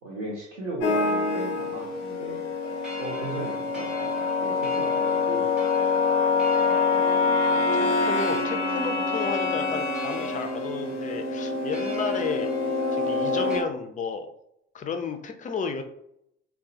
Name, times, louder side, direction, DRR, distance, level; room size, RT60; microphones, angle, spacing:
voice 1, 0.0-2.4 3.0-5.5, right 2 dB, 75° right, -5 dB, 0.8 m, -36 dB
sound 1, 0.8-13.6, left 4 dB, 85° left, 0.5 m, -26 dB
sound 2, 2.6-13.6, left 2 dB, ahead, 0.8 m, -40 dB
voice 2, 7.5-12.5 12.9-14.3 14.7-15.8, left 5 dB, 25° left, 7 dB, 0.4 m, -33 dB
3.7 x 2.0 x 2.7 m, 0.76 s
figure-of-eight pair, 50°, 35 cm